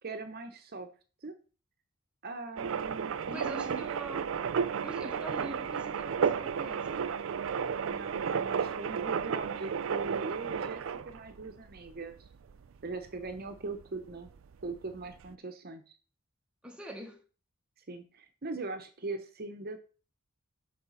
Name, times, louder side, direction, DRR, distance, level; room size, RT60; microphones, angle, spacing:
voice 1, 0.0-0.9 1.2-1.3 2.2-3.8 7.9-12.3 12.8-14.3 14.6-16.0 17.9-19.8, right 3 dB, 45° right, 0.8 m, -40 dB
sound 1, 2.6-13.5 13.8-13.9 14.1-15.3, right 6 dB, 65° right, 0.4 m, -33 dB
voice 2, 3.3-4.3 4.8-7.0 16.6-17.2, right 2 dB, 5° right, 1.1 m, -43 dB
6.6 x 4.8 x 5.5 m
head